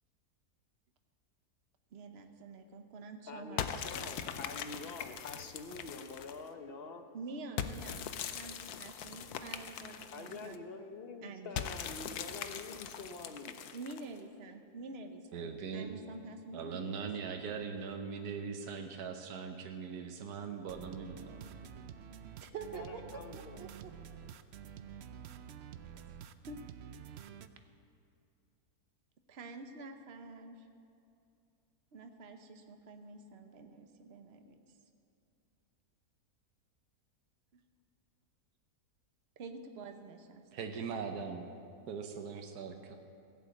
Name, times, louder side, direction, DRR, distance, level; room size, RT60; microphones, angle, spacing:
voice 1, 1.9-4.1 7.1-10.6 11.2-11.5 11.8-11.9 13.7-17.1 22.4-23.9 26.5-26.6 27.0-27.2 29.3-30.7 31.9-34.6 39.4-40.4, right 3 dB, 45° right, 6 dB, 1.1 m, -48 dB
voice 2, 3.3-7.2 10.1-13.6 22.7-23.6, left 3 dB, 45° left, 7 dB, 0.9 m, -46 dB
sound 1, 3.6-6.5 7.6-10.6 11.6-14.2, left 8 dB, 80° left, 1.2 m, -41 dB
voice 3, 15.3-15.9 16.5-21.6 40.5-41.4 41.9-42.7, right 6 dB, 80° right, 4 dB, 1.4 m, -40 dB
sound 2, 20.7-27.5, right 8 dB, 65° right, 0.6 m, -49 dB
15.5 x 8.2 x 8.4 m, 2.5 s
omnidirectional pair, 1.6 m